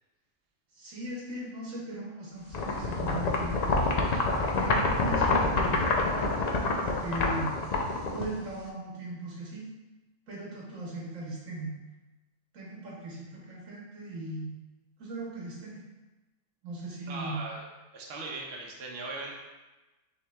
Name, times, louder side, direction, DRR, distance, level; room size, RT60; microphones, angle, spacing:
voice 1, 0.7-3.8 4.5-7.5 8.1-9.7 10.3-11.8 12.5-14.5 15.0-15.8 16.6-17.4, right 1 dB, 80° right, -4 dB, 1.4 m, -38 dB
sound 1, 2.5-8.7, left 3 dB, 80° left, 0.3 m, -27 dB
voice 2, 17.0-17.6 17.9-19.3, right 3 dB, 55° right, -2 dB, 0.8 m, -39 dB
5.7 x 3.3 x 2.3 m, 1.1 s
omnidirectional pair, 1.3 m